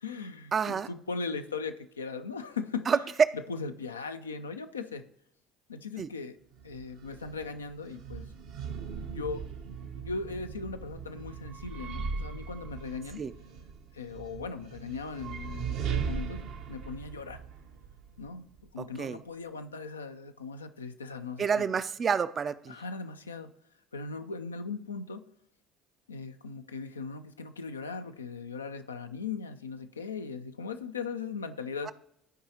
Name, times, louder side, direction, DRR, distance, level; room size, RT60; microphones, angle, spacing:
voice 1, 0.0-3.1 3.3-5.0 5.7-6.4 6.6-8.3 9.0-9.4 10.0-13.3 13.9-16.4 16.7-17.4 18.2-21.7 22.7-23.5 23.9-25.3 26.1-31.9, left 4 dB, 90° left, 0.4 m, -38 dB
voice 2, 0.5-0.9 2.9-3.0 6.0-6.1 13.2-13.3 18.8-19.2 21.4-22.7 31.9-32.0, right 6 dB, 40° right, 0.4 m, -29 dB
sound 1, 6.5-18.7, right 6 dB, 65° right, 0.8 m, -39 dB
13.5 x 4.7 x 2.9 m
hypercardioid pair, 60°, 0 cm